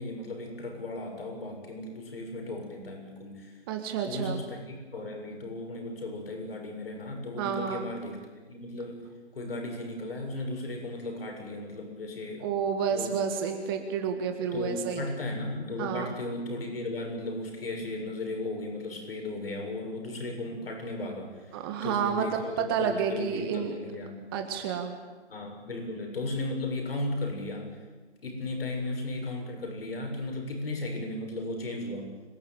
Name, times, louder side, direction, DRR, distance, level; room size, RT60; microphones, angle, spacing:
voice 1, 0.0-3.6 4.0-8.2 8.5-9.1 9.3-12.5 12.9-13.2 14.4-24.2 25.3-27.8 28.2-32.1, left 2 dB, 55° left, 2 dB, 7.7 m, -36 dB
voice 2, 3.7-4.4 7.4-7.9 12.4-15.1 15.8-16.1 21.5-23.7 24.3-25.0, right 7 dB, 20° right, 5 dB, 1.7 m, -30 dB
26.0 x 16.0 x 9.2 m, 1.3 s
figure-of-eight pair, 145°, 34 cm